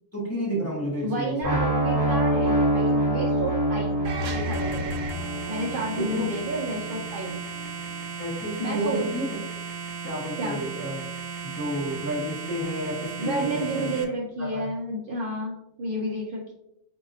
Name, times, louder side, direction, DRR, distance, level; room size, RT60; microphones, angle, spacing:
voice 1, 0.1-1.6 6.0-6.2 8.2-9.4 10.0-11.1 11.4-13.9 14.4-14.7, equal, 15° left, -5 dB, 0.6 m, -31 dB
voice 2, 1.0-4.9 5.5-7.4 8.6-9.1 10.4-10.6 13.2-16.5, right 1 dB, 60° right, -2 dB, 0.6 m, -31 dB
sound 1, 1.4-7.3, right 1 dB, 20° right, 0.7 m, -26 dB
sound 2, 4.0-14.0, right 4 dB, 85° right, 1.0 m, -35 dB
4.0 x 2.7 x 2.6 m, 0.83 s
omnidirectional pair, 1.3 m